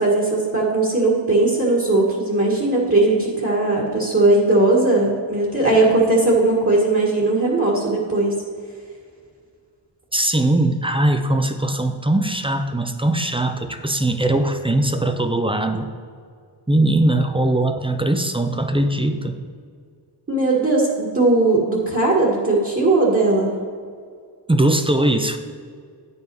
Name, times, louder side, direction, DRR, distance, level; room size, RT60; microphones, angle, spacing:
voice 1, 0.0-8.4 20.3-23.6, right 2 dB, 30° right, -5 dB, 1.5 m, -18 dB
voice 2, 10.1-15.9 16.7-19.4 24.5-25.4, right 1 dB, 10° right, 7 dB, 0.5 m, -20 dB
9.4 x 5.4 x 4.6 m, 2.1 s
wide cardioid pair, 85°, 44 cm